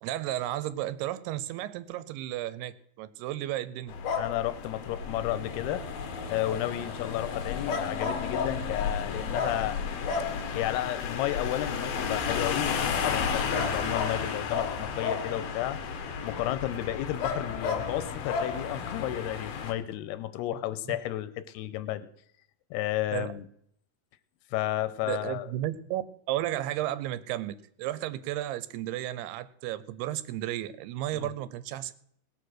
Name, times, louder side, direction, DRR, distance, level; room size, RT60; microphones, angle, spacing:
voice 1, 0.0-3.9 20.9-21.0 23.1-23.3 25.0-26.0 26.3-31.9, right 14 dB, 90° right, 15 dB, 2.8 m, -33 dB
sound 1, 3.9-19.7, left 6 dB, 70° left, 3.1 m, -32 dB
voice 2, 4.2-5.8 6.3-9.8 10.5-15.8 16.2-22.1 22.7-23.4 24.5-25.5 31.1-31.3, left 14 dB, 90° left, 14 dB, 2.7 m, -32 dB
sound 2, 5.0-11.5, left 1 dB, 15° right, 3.5 m, -50 dB
18.5 x 7.1 x 6.4 m, 0.70 s
omnidirectional pair, 4.6 m